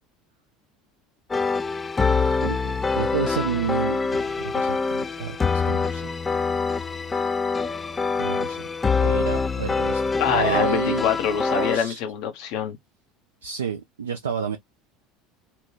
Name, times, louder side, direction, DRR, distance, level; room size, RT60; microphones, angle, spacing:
sound 1, 1.3-11.8, left 4 dB, 20° left, 0.3 m, -25 dB
voice 1, 2.2-6.1 8.2-8.6 9.0-10.0 10.3-11.1 11.4-12.0 13.4-14.6, right 7 dB, 75° right, 0.4 m, -30 dB
voice 2, 10.2-12.8, left 8 dB, 55° left, 0.7 m, -25 dB
2.9 x 2.2 x 3.0 m
figure-of-eight pair, 70°, 0 cm